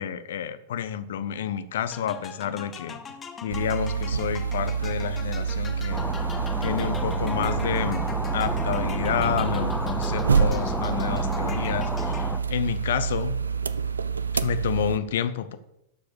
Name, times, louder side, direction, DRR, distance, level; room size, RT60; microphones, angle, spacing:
voice 1, 0.0-3.0 3.4-6.0 6.6-8.0 8.3-13.4 14.4-15.6, left 9 dB, 60° left, 12 dB, 0.8 m, -29 dB
sound 1, 1.9-12.6, left 6 dB, 20° left, 1.1 m, -42 dB
sound 2, 3.5-15.0, right 6 dB, 75° right, 0.4 m, -27 dB
sound 3, 5.9-12.4, equal, ahead, 0.8 m, -32 dB
12.0 x 5.0 x 6.9 m, 0.84 s
figure-of-eight pair, 90°, 0 cm